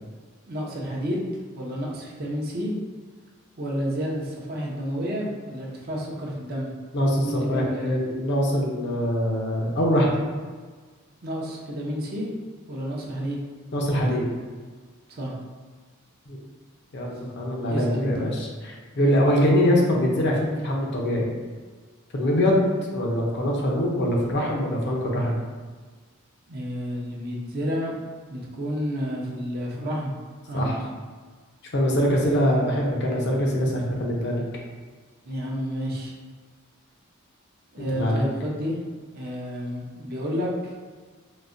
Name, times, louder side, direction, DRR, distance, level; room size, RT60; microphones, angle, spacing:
voice 1, 0.5-1.3 1.5-2.7 3.6-6.7 7.2-8.0 11.2-12.3 12.7-13.4 15.1-15.3 17.7-18.3 18.9-19.2 26.5-27.9 28.3-30.1 30.5-30.8 35.2-36.1 37.7-38.8 39.1-40.7, equal, 50° right, -3 dB, 0.6 m, -30 dB
voice 2, 6.9-10.1 13.7-14.3 16.3-16.4 16.9-21.3 22.1-22.6 22.9-25.4 30.5-30.8 31.7-34.4 37.9-38.3, equal, 55° left, -1 dB, 0.6 m, -23 dB
3.8 x 2.1 x 2.5 m, 1.5 s
head